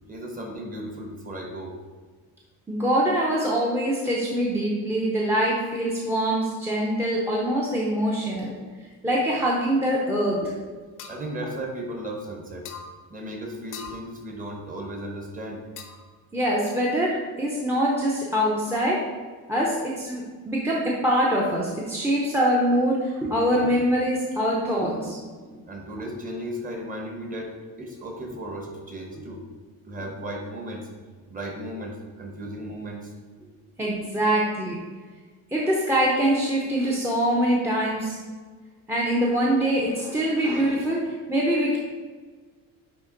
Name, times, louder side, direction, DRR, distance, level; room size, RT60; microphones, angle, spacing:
voice 1, 0.1-1.8 11.1-12.7 13.1-15.7 25.7-29.4 29.9-30.9 31.3-33.1, right 1 dB, 20° right, 1 dB, 1.0 m, -35 dB
voice 2, 2.7-8.6 9.0-10.5 16.3-19.0 19.5-25.3 33.4-33.5 33.8-34.8 35.5-38.2 38.9-41.8, equal, 5° right, -4 dB, 0.6 m, -24 dB
sound 1, 11.0-11.2 12.6-12.9 13.7-14.0 15.8-16.1, left 6 dB, 55° left, 0.7 m, -40 dB
9.5 x 3.4 x 3.8 m, 1.4 s
cardioid pair, 175°, 36 cm